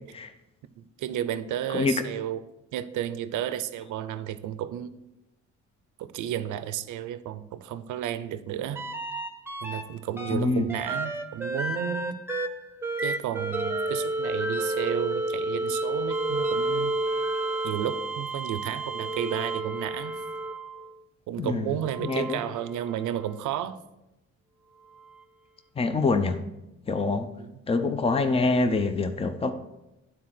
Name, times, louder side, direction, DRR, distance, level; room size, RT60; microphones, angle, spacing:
voice 1, 0.8-2.4 2.7-4.9 6.0-8.8 9.6-12.1 13.0-16.9 17.6-20.2 21.3-23.8 27.4-27.6, right 10 dB, 80° right, 0.6 m, -32 dB
sound 1, 8.7-9.8 10.2-20.9 21.8-23.3 25.1-25.2, right 2 dB, 10° right, 0.9 m, -31 dB
voice 2, 10.3-10.7 21.4-21.7 22.0-22.4 25.8-26.4 26.9-27.3 27.7-29.5, left 3 dB, 20° left, 0.6 m, -25 dB
9.3 x 4.2 x 5.9 m
cardioid pair, 90°, 30 cm